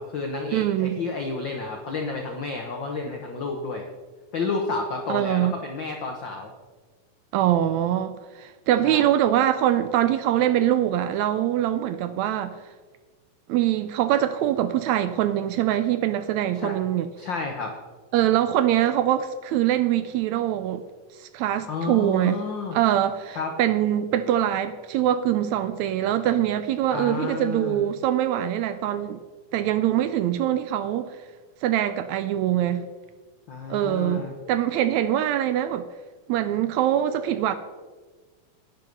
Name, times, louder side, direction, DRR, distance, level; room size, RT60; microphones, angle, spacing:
voice 1, 0.0-3.8 4.3-6.5 8.8-9.0 16.5-16.7 17.2-17.7 21.7-22.8 23.3-23.5 26.9-27.9 33.5-34.3, left 4 dB, 90° left, 1.0 m, -31 dB
voice 2, 0.5-1.0 5.1-5.6 7.3-12.6 13.5-17.1 18.1-20.8 21.2-22.4 22.7-29.2 29.5-31.2 31.6-32.9 33.7-35.8 36.3-37.5, right 11 dB, 85° right, 1.6 m, -23 dB
11.0 x 10.0 x 5.3 m
omnidirectional pair, 3.8 m